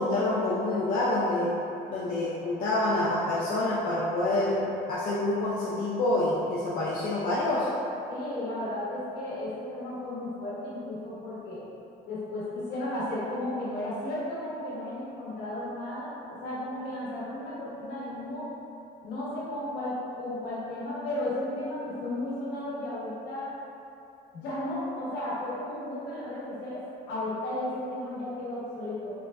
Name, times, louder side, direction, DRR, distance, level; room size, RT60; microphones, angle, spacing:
voice 1, 0.0-1.5 1.9-4.6 4.9-7.7, left 2 dB, 55° left, -7 dB, 0.6 m, -27 dB
voice 2, 8.1-11.6 12.1-18.5 19.0-23.5 24.3-26.8 27.1-29.1, left 1 dB, 80° left, -9 dB, 1.2 m, -34 dB
3.8 x 3.2 x 2.2 m, 2.8 s
cardioid pair, 110°, 17 cm